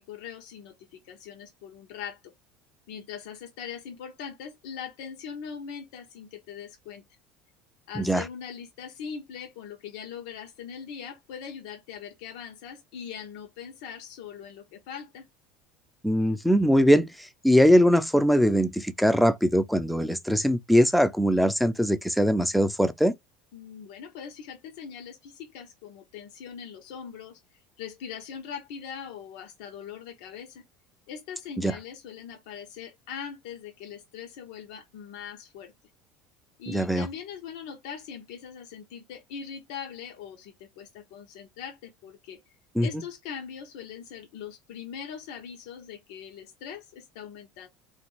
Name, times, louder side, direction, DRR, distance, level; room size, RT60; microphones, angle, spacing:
voice 1, 0.0-2.3 2.9-7.0 7.9-15.3 23.5-27.4 27.8-30.6 31.1-35.7 36.6-42.4 42.8-47.7, left 7 dB, 80° left, 0.7 m, -41 dB
voice 2, 7.9-8.2 16.0-23.1 31.6-31.8 36.7-37.1 42.8-42.9, equal, ahead, 0.4 m, -21 dB
3.1 x 2.5 x 3.0 m
supercardioid pair, 130°, 3 cm